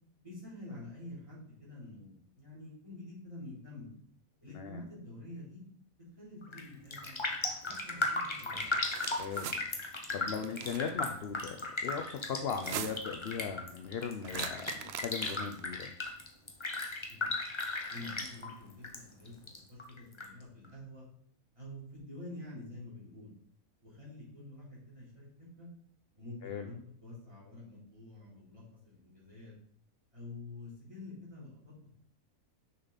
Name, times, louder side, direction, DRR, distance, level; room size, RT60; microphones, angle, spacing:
voice 1, 0.2-3.9 4.4-5.6 6.2-8.6 17.1-17.3 17.9-19.3 19.7-21.0 21.6-23.3 23.8-25.7 26.2-29.5 30.1-31.9, left 2 dB, 20° right, -9 dB, 3.6 m, -48 dB
Raindrop, 6.4-6.7 6.9-19.0 19.3-20.3 20.6-20.7, left 2 dB, 25° left, 0.8 m, -36 dB
sound 1, 8.6-9.6 10.4-10.9 12.5-13.2 14.2-15.6, right 9 dB, 65° right, 0.6 m, -42 dB
voice 2, 9.2-9.5 10.1-15.9 26.4-26.7, left 6 dB, 60° left, 5 dB, 0.7 m, -38 dB
6.4 x 5.9 x 4.0 m, 0.65 s
omnidirectional pair, 1.5 m